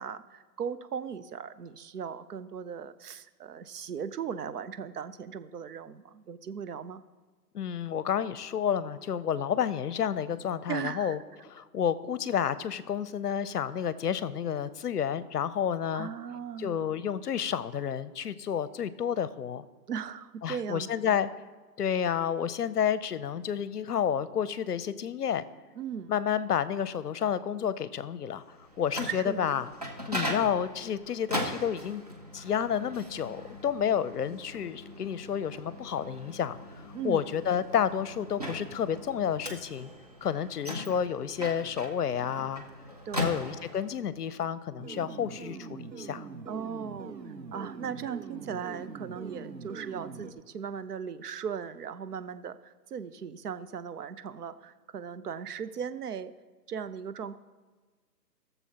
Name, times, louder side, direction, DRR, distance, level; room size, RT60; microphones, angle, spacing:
voice 1, 0.0-7.0 10.7-11.2 15.9-17.0 19.9-21.2 25.8-26.1 29.1-29.6 36.9-37.2 43.1-43.5 46.5-56.3 56.7-57.4, right 7 dB, 70° right, 13 dB, 0.7 m, -38 dB
voice 2, 7.5-11.2 11.5-16.1 16.6-19.6 20.4-21.3 21.8-25.4 26.1-28.4 28.8-29.7 30.1-32.0 32.3-36.6 37.0-39.9 40.2-42.6 43.2-46.2, left 8 dB, 70° left, 16 dB, 0.7 m, -30 dB
Microwave oven, 28.5-44.0, equal, 25° right, 0.5 m, -39 dB
sound 1, 44.8-50.3, right 5 dB, 85° right, 1.2 m, -43 dB
18.0 x 7.0 x 2.9 m, 1.4 s
hypercardioid pair, 155°, 49 cm